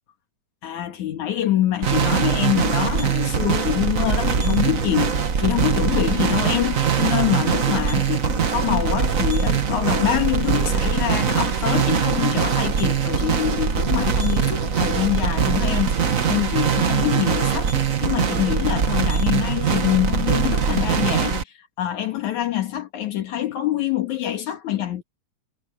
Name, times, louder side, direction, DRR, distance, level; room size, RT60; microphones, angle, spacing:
voice 1, 0.6-25.0, left 12 dB, 75° left, 3.1 m, -25 dB
sound 1, 1.8-21.4, right 6 dB, 50° right, 0.9 m, -22 dB
omnidirectional pair, 3.4 m